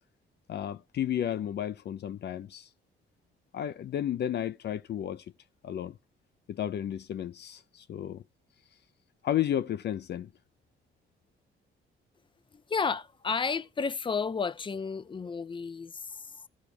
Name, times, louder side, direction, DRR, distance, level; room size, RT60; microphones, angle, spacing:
voice 1, 0.5-2.7 3.5-5.2 5.6-5.9 6.5-8.2 9.2-10.3, left 10 dB, 60° left, 0.6 m, -32 dB
voice 2, 12.7-16.5, left 5 dB, 25° left, 0.7 m, -32 dB
15.5 x 6.5 x 3.4 m
cardioid pair, 90°, 20 cm